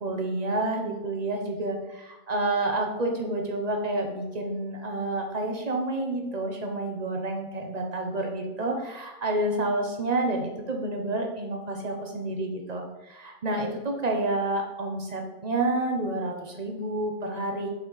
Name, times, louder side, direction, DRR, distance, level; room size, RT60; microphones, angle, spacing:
voice 1, 0.0-17.7, right 2 dB, 30° right, 2 dB, 0.8 m, -29 dB
5.8 x 4.3 x 5.6 m, 1.1 s
omnidirectional pair, 1.7 m